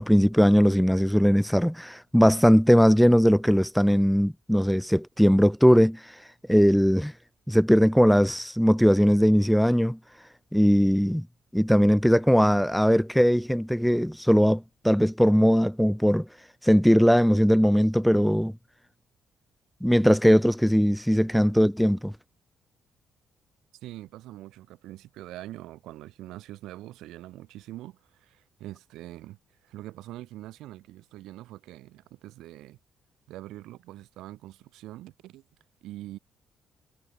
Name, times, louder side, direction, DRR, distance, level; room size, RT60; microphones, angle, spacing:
voice 1, 0.0-6.2 6.5-7.1 7.5-10.0 10.5-11.2 11.5-16.3 16.6-18.5 19.8-22.1, equal, ahead, 0.5 m, -20 dB
voice 2, 23.8-32.8 33.3-35.4 35.8-36.2, right 15 dB, 90° right, 3.2 m, -43 dB
cardioid pair, 90°, 0 cm